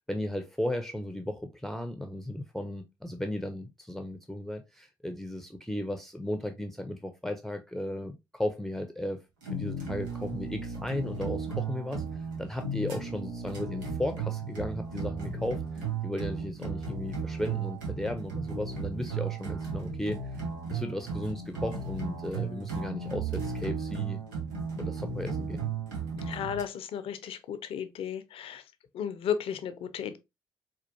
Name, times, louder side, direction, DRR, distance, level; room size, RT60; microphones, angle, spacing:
voice 1, 0.1-9.2 9.4-20.2 20.7-24.2 24.8-25.6, left 1 dB, 5° left, 0.6 m, -35 dB
sound 1, 9.4-26.6, right 4 dB, 90° right, 0.7 m, -35 dB
voice 2, 26.2-28.6 28.9-30.2, left 8 dB, 65° left, 0.5 m, -34 dB
4.3 x 2.4 x 2.7 m
hypercardioid pair, 40°, 10 cm